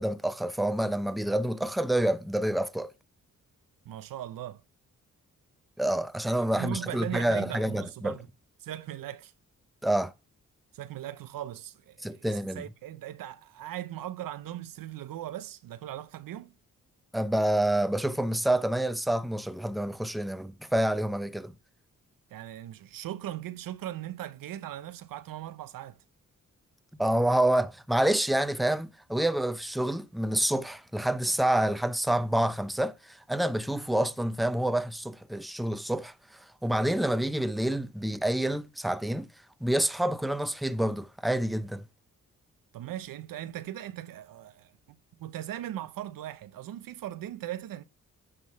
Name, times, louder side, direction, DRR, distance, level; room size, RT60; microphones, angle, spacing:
voice 1, 0.0-2.9 5.8-8.2 9.8-10.1 12.0-12.6 17.1-21.5 27.0-39.3 39.6-41.8, right 1 dB, ahead, 0.7 m, -28 dB
voice 2, 3.8-4.6 6.6-8.3 8.6-9.3 10.7-16.5 22.3-26.0 42.7-47.8, right 12 dB, 80° right, 0.6 m, -39 dB
9.7 x 3.7 x 4.1 m
cardioid pair, 55°, 33 cm